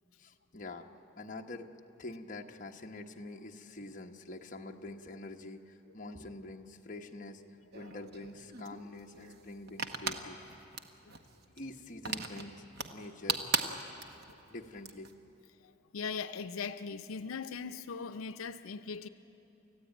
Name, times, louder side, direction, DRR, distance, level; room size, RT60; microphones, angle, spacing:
voice 1, 0.2-0.9 1.2-1.7 2.0-7.4 7.7-10.6 11.6-12.6 12.9-13.4 14.5-15.1, left 2 dB, 40° left, 2 dB, 1.1 m, -46 dB
sound 1, 7.7-15.1, right 5 dB, 50° right, 1.2 m, -38 dB
voice 2, 15.6-19.1, left 5 dB, 90° left, 9 dB, 0.5 m, -40 dB
29.0 x 14.5 x 9.1 m, 2.9 s
head